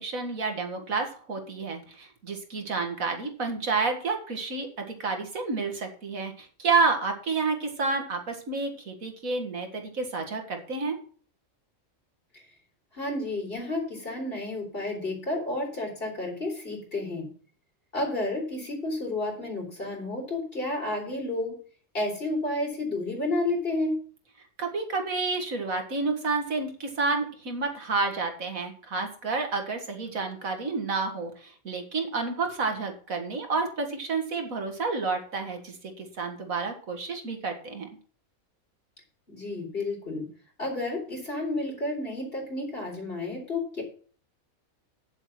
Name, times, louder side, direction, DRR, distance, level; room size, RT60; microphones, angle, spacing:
voice 1, 0.0-11.0 24.6-37.9, right 4 dB, 70° right, 5 dB, 2.2 m, -30 dB
voice 2, 12.9-17.3 17.9-21.6 21.9-24.0 39.3-40.3 40.6-43.8, left 2 dB, 40° left, 0 dB, 4.2 m, -31 dB
8.7 x 7.3 x 6.0 m, 0.43 s
omnidirectional pair, 1.5 m